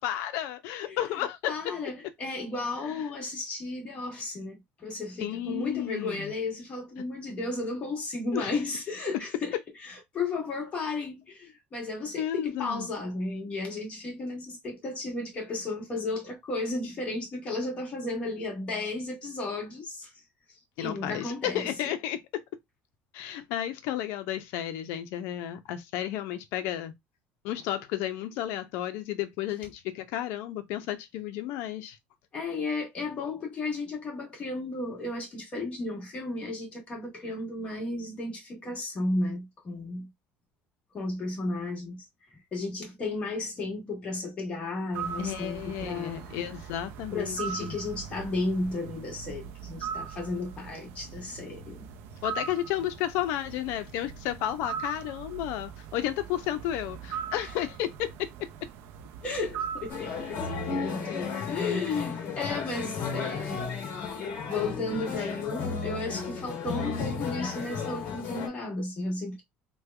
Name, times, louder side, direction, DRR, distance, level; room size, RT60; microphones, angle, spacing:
voice 1, 0.0-1.5 2.9-3.0 5.2-6.3 8.3-8.6 12.2-12.9 20.8-22.4 23.1-26.9 27.4-32.0 45.2-47.8 52.2-58.3, left 12 dB, 70° left, 0.7 m, -32 dB
voice 2, 1.5-9.5 9.8-20.1 20.8-21.9 32.3-40.1 40.9-46.2 47.1-51.9 59.2-63.7 63.9-64.1 64.5-69.4, left 2 dB, 30° left, 1.4 m, -34 dB
sound 1, 44.9-60.7, right 7 dB, 65° right, 0.5 m, -40 dB
sound 2, 59.9-68.5, left 5 dB, 45° left, 1.5 m, -33 dB
3.3 x 2.3 x 3.3 m
cardioid pair, 155°, 4 cm